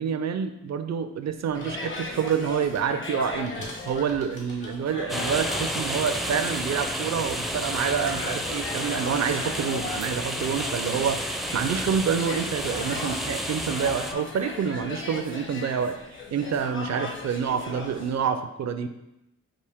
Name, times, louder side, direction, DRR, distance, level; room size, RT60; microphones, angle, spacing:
voice 1, 0.0-16.0 16.3-18.9, right 7 dB, 60° right, 9 dB, 0.5 m, -28 dB
sound 1, 1.3-12.9, left 1 dB, 75° left, 1.2 m, -48 dB
sound 2, 1.5-18.2, left 3 dB, 40° left, 0.7 m, -38 dB
sound 3, 5.1-14.1, right 1 dB, ahead, 0.4 m, -31 dB
4.9 x 2.5 x 3.5 m, 0.89 s
cardioid pair, 45°, 30 cm